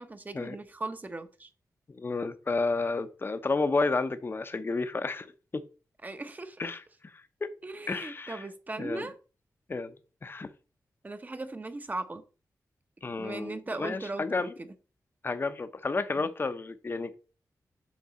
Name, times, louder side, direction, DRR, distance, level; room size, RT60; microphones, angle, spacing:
voice 1, 0.0-1.5 6.0-6.6 7.6-9.1 11.0-12.2 13.2-14.7 16.2-16.3, right 2 dB, 25° right, 0.9 m, -38 dB
voice 2, 1.9-5.6 6.6-6.8 7.4-7.5 7.9-8.4 8.8-9.1 9.7-10.0 10.2-10.5 13.0-14.5 15.2-17.1, left 3 dB, 35° left, 0.7 m, -31 dB
7.3 x 6.0 x 4.2 m
wide cardioid pair, 120°, 7 cm